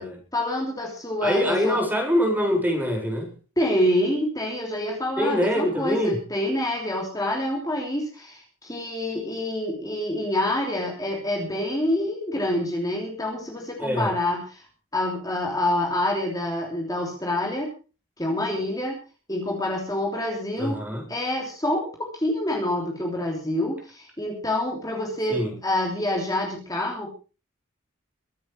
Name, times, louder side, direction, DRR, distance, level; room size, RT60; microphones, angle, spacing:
voice 1, 0.3-1.8 3.6-14.7 14.9-17.7 18.2-19.0 19.3-20.8 21.1-27.1, left 1 dB, 15° left, -1 dB, 3.3 m, -27 dB
voice 2, 1.2-3.3 5.2-6.2 13.8-14.1 20.6-21.1 25.3-25.5, equal, 10° right, 1 dB, 4.5 m, -24 dB
23.5 x 9.2 x 4.7 m, 0.35 s
head